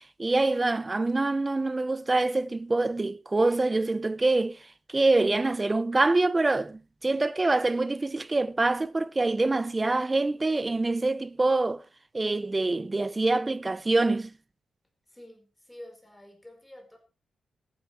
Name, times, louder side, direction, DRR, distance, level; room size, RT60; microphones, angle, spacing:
voice 1, 0.0-4.6 4.9-11.8 12.1-14.3, right 2 dB, 20° right, 0.6 m, -25 dB
voice 2, 15.1-17.0, left 1 dB, 5° left, 4.7 m, -48 dB
15.0 x 14.0 x 3.4 m
wide cardioid pair, 135°, 0 cm